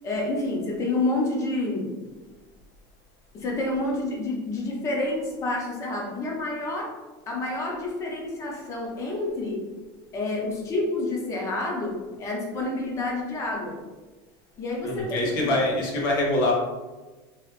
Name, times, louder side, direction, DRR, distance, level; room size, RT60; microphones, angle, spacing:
voice 1, 0.0-1.9 3.3-6.9 7.3-9.6 10.1-13.8 14.6-15.6, left 2 dB, 30° left, -1 dB, 0.7 m, -29 dB
voice 2, 14.8-16.5, left 1 dB, 85° left, -2 dB, 1.0 m, -24 dB
3.0 x 2.4 x 3.2 m, 1.3 s
supercardioid pair, 150°, 11 cm